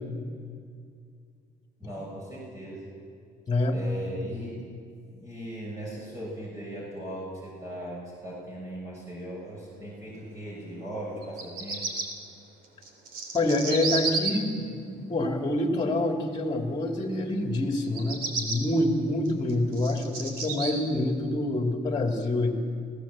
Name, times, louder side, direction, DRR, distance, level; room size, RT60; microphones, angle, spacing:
voice 1, 1.8-2.9 3.7-4.7 5.1-11.8, right 1 dB, 20° right, -5 dB, 6.4 m, -38 dB
voice 2, 3.5-3.8 13.3-14.7 15.0-22.5, left 1 dB, 25° left, 3 dB, 2.7 m, -26 dB
Bird vocalization bird call bird song, 11.2-12.1 12.8-14.3 17.8-18.6 19.3-20.7, right 4 dB, 65° right, 3.7 m, -31 dB
24.5 x 17.0 x 7.5 m, 2.3 s
cardioid pair, 110°, 17 cm